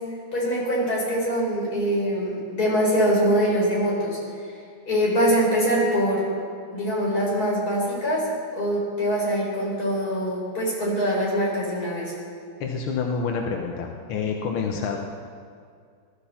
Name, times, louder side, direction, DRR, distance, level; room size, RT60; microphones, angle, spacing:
voice 1, 0.3-4.2 4.9-6.3 6.7-12.1, equal, 45° left, -4 dB, 5.0 m, -23 dB
voice 2, 12.6-15.0, left 5 dB, 90° left, 2 dB, 1.9 m, -28 dB
21.0 x 13.0 x 4.4 m, 2.2 s
omnidirectional pair, 2.2 m